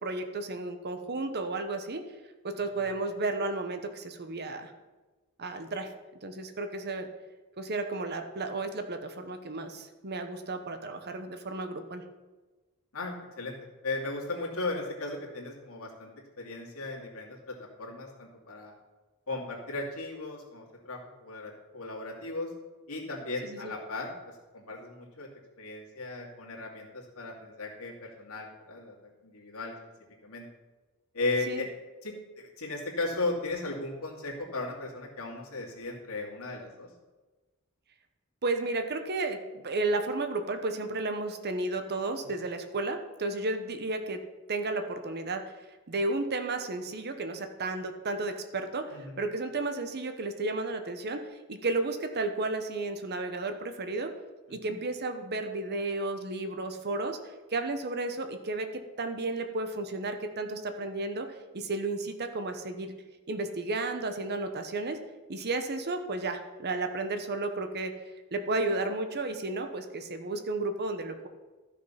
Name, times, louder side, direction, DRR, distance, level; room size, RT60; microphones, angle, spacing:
voice 1, 0.0-2.0 2.4-4.7 5.4-5.9 6.2-7.1 7.6-12.0 23.4-23.7 31.5-31.6 38.4-44.2 44.5-45.4 45.9-51.2 51.5-54.1 54.5-62.9 63.3-65.0 65.3-67.9 68.3-71.3, right 2 dB, 45° right, 7 dB, 1.0 m, -33 dB
voice 2, 12.9-13.5 13.8-16.1 16.4-18.7 19.3-22.5 22.9-24.1 24.5-25.3 25.6-29.0 29.2-29.7 30.2-30.5 31.1-31.7 32.0-36.9 48.9-49.1 54.6-54.7, left 2 dB, 70° left, -2 dB, 2.6 m, -36 dB
13.5 x 6.4 x 5.7 m, 1.2 s
head